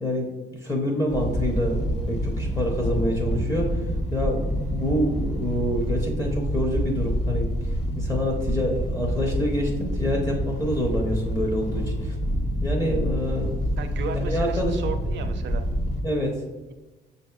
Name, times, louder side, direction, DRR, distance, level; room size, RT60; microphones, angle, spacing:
voice 1, 0.0-1.8 2.1-12.2 12.6-13.6 14.1-14.8 16.0-16.4, equal, 20° left, 0 dB, 0.7 m, -27 dB
sound 1, 1.1-16.0, equal, 35° left, 0.9 m, -27 dB
voice 2, 13.8-15.6, right 6 dB, 65° right, 8 dB, 0.5 m, -34 dB
5.8 x 2.7 x 2.3 m, 1.2 s
cardioid pair, 90°, 20 cm